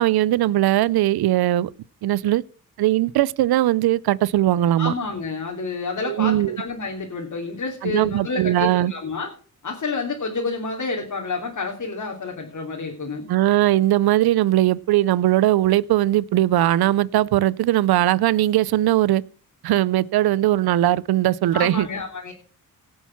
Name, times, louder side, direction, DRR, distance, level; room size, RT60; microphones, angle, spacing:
voice 1, 0.0-1.7 2.0-2.4 2.8-4.9 6.1-6.6 7.8-8.9 13.3-19.2 19.6-21.9, right 14 dB, 85° right, 0.6 m, -19 dB
voice 2, 4.8-9.3 9.6-13.2 21.5-22.3, left 3 dB, 55° left, 3.2 m, -29 dB
18.0 x 6.4 x 5.9 m
cardioid pair, 60°, 36 cm